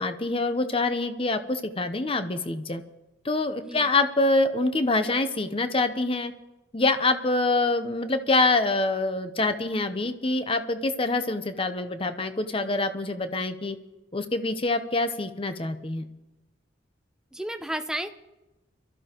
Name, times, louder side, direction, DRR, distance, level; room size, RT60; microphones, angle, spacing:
voice 1, 0.0-2.8 3.2-6.3 6.7-13.8 14.1-16.0, left 2 dB, 30° left, 9 dB, 0.9 m, -25 dB
voice 2, 17.3-18.1, right 1 dB, 5° right, 8 dB, 0.6 m, -32 dB
24.0 x 13.5 x 3.0 m, 1.0 s
head